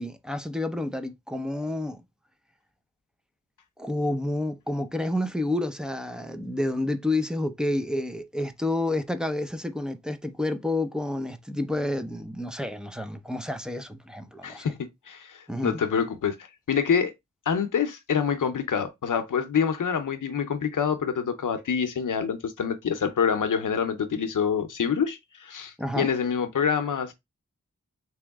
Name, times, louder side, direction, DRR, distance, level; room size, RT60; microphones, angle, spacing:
voice 1, 0.0-2.0 3.8-14.7 15.5-15.8 25.8-26.1, left 1 dB, ahead, 0.6 m, -29 dB
voice 2, 14.4-14.8 15.1-16.4 16.7-17.1 17.5-27.1, left 7 dB, 85° left, 0.7 m, -26 dB
3.5 x 3.0 x 3.5 m
cardioid pair, 50°, 30 cm